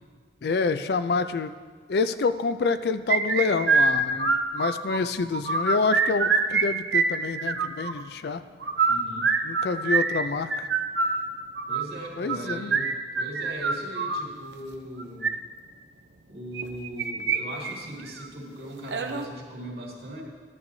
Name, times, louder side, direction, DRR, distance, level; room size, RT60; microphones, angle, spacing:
voice 1, 0.4-1.5 1.9-8.4 9.4-10.7 12.2-12.9, left 4 dB, 65° left, 11 dB, 0.4 m, -27 dB
sound 1, 3.1-5.0 5.3-6.6 6.9-7.9 8.6-14.2 15.0-15.3 16.5-17.4 17.6-17.7 18.2-18.3 18.9-19.3, right 4 dB, 85° right, 0.7 m, -24 dB
voice 2, 8.9-9.3 11.7-12.8 13.1-15.3 16.3-20.2, right 1 dB, 65° right, -3 dB, 2.2 m, -39 dB
13.0 x 10.5 x 2.7 m, 1.5 s
head